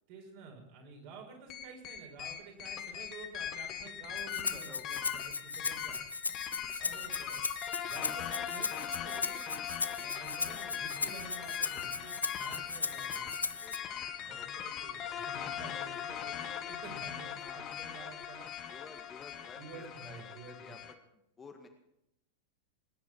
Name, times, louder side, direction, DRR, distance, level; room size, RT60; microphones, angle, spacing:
voice 1, 0.1-6.0 6.3-7.4 7.8-9.7 10.0-13.4 14.2-19.0 19.6-20.8, right 4 dB, 50° right, 1 dB, 5.5 m, -51 dB
sound 1, 1.5-20.9, left 9 dB, 35° left, 1.5 m, -40 dB
Rattle (instrument), 4.2-13.8, left 4 dB, 80° left, 0.4 m, -37 dB
voice 2, 4.5-5.0 6.8-7.2 10.5-10.8 13.5-14.0 14.3-14.7 17.3-17.8 18.7-20.8 21.4-21.7, left 4 dB, 20° left, 4 dB, 1.8 m, -53 dB
20.5 x 10.0 x 6.2 m, 0.83 s
figure-of-eight pair, 90°, 0 cm